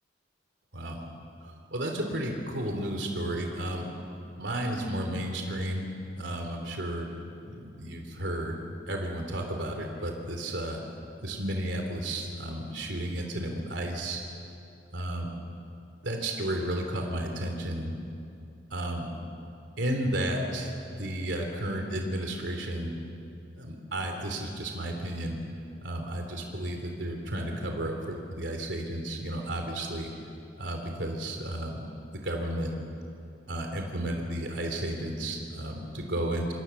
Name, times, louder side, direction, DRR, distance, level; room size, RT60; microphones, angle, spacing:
voice 1, 1.4-3.9 4.4-5.9 6.1-7.1 7.4-8.6 8.9-10.8 11.2-14.2 14.9-15.3 16.0-17.9 18.7-19.1 19.8-20.7 21.0-22.9 23.6-25.4 25.8-30.1 30.6-31.8 32.1-32.7 33.5-36.5, right 1 dB, 75° right, 3 dB, 3.2 m, -32 dB
27.0 x 26.0 x 7.1 m, 2.6 s
head